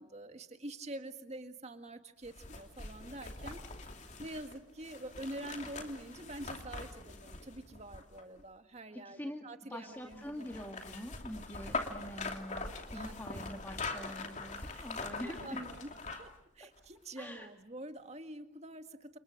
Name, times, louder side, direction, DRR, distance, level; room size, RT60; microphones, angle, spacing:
voice 1, 0.0-10.7 12.9-13.4 14.0-14.1 14.7-15.9 16.2-19.2, right 1 dB, 35° right, 7 dB, 1.8 m, -46 dB
sound 1, 2.2-8.4 10.1-16.4 16.8-16.9, left 3 dB, 40° left, 2.7 m, -43 dB
voice 2, 8.9-9.4 9.7-15.6 17.2-17.5, equal, 10° left, 3 dB, 1.9 m, -45 dB
30.0 x 28.5 x 6.5 m, 0.76 s
head